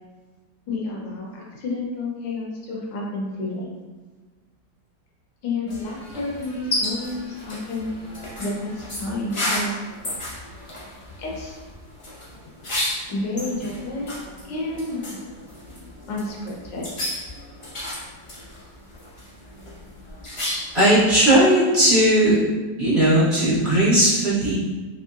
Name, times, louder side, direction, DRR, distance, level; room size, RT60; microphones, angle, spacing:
voice 1, 0.7-3.7 5.4-7.9 8.4-9.8 11.2-11.6 13.1-14.1 14.5-15.2 16.1-16.9, left 2 dB, 80° left, -3 dB, 1.4 m, -30 dB
sound 1, 5.7-20.9, left 1 dB, 45° left, 0.4 m, -33 dB
voice 2, 20.7-22.4 22.8-24.6, right 1 dB, 40° right, -10 dB, 1.1 m, -17 dB
3.5 x 3.1 x 2.4 m, 1.3 s
omnidirectional pair, 2.0 m